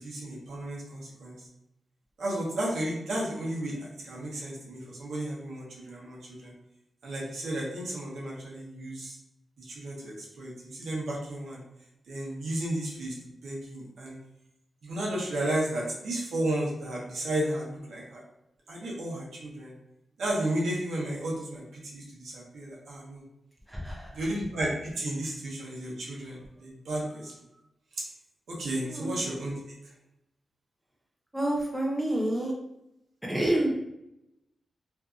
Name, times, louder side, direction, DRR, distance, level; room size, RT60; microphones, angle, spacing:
voice 1, 0.0-1.4 2.2-6.5 7.0-9.2 9.6-11.6 12.1-13.1 13.4-14.2 14.8-18.2 18.7-19.7 20.2-23.2 24.1-27.3 28.5-29.5, right 1 dB, 80° right, -4 dB, 0.8 m, -33 dB
voice 2, 23.7-24.1 28.9-29.1 31.3-32.5 33.2-33.7, right 1 dB, 5° right, -2 dB, 0.4 m, -28 dB
2.6 x 2.4 x 2.4 m, 0.83 s
wide cardioid pair, 165°, 0 cm